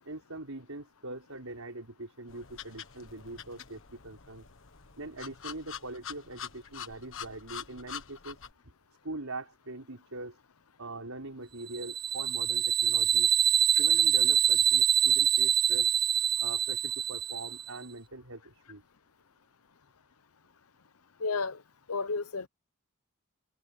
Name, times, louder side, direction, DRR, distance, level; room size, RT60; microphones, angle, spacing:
voice 1, 0.0-4.5 5.0-8.4 9.0-10.4 10.8-13.3 13.8-15.9 16.4-18.8, right 2 dB, 75° right, 5.2 m, -42 dB
sound 1, 2.3-8.5, left 8 dB, 65° left, 1.5 m, -45 dB
sound 2, 11.7-17.7, right 8 dB, 20° right, 0.4 m, -25 dB
voice 2, 21.2-21.6 21.9-22.5, left 4 dB, 85° left, 0.8 m, -31 dB
head